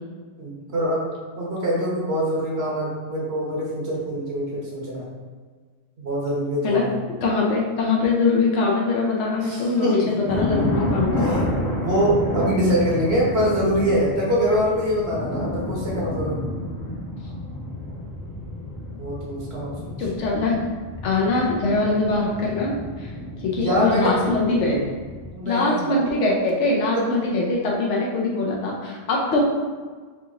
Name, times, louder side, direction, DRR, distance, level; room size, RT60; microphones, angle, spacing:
voice 1, 0.4-1.1 1.3-5.1 6.0-6.9 9.4-10.8 11.2-16.4 19.0-19.9 23.5-24.3 25.3-25.9 26.9-27.0, equal, 60° right, -4 dB, 1.3 m, -24 dB
voice 2, 7.2-11.3 20.0-20.7 21.0-23.1 23.4-24.8 25.4-29.4, left 3 dB, 75° left, -2 dB, 1.1 m, -22 dB
sound 1, 10.3-25.3, left 1 dB, 20° left, 0.6 m, -30 dB
4.0 x 2.8 x 3.8 m, 1.5 s
omnidirectional pair, 1.2 m